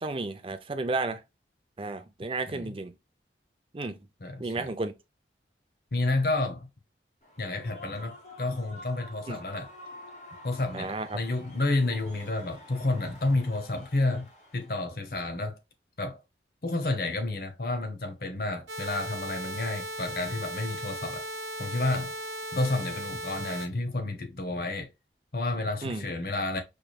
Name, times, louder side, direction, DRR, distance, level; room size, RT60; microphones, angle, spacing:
voice 1, 0.0-1.2 1.8-2.9 3.7-4.0 4.4-4.9 9.3-9.4 10.7-11.2 25.8-26.1, right 3 dB, 30° right, 0.5 m, -32 dB
voice 2, 4.2-4.7 5.9-6.7 7.4-9.7 10.4-15.6 16.0-16.2 16.6-21.2 21.6-22.2 22.5-24.9 25.3-26.6, left 2 dB, 55° left, 0.8 m, -30 dB
Human voice / Cheering / Applause, 7.2-14.9, left 1 dB, 40° left, 1.2 m, -49 dB
sound 1, 18.7-23.7, right 1 dB, 80° right, 0.9 m, -37 dB
4.6 x 3.1 x 2.3 m
head